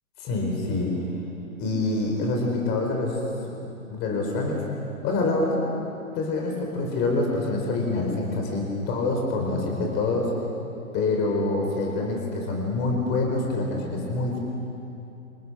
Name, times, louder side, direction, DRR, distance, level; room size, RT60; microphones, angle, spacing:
voice 1, 0.2-0.9 1.6-3.2 3.9-4.6 5.0-5.6 6.1-10.3 10.9-14.4, left 2 dB, 25° left, 0 dB, 5.1 m, -26 dB
28.5 x 28.5 x 6.6 m, 2.8 s
hypercardioid pair, 145°, 43 cm